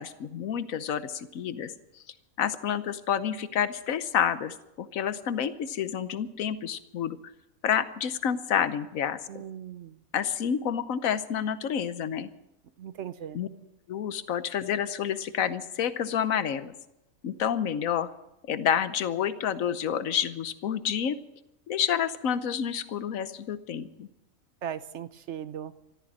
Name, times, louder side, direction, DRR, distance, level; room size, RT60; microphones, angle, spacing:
voice 1, 0.0-1.7 2.4-7.2 7.6-9.4 10.1-12.3 13.3-13.5 13.9-16.7 17.2-18.1 18.5-21.2 21.7-24.1, left 8 dB, 80° left, 13 dB, 1.3 m, -29 dB
voice 2, 9.3-10.0 12.8-13.4 24.6-25.7, right 9 dB, 65° right, 13 dB, 1.0 m, -38 dB
14.0 x 13.5 x 7.4 m, 0.92 s
omnidirectional pair, 1.4 m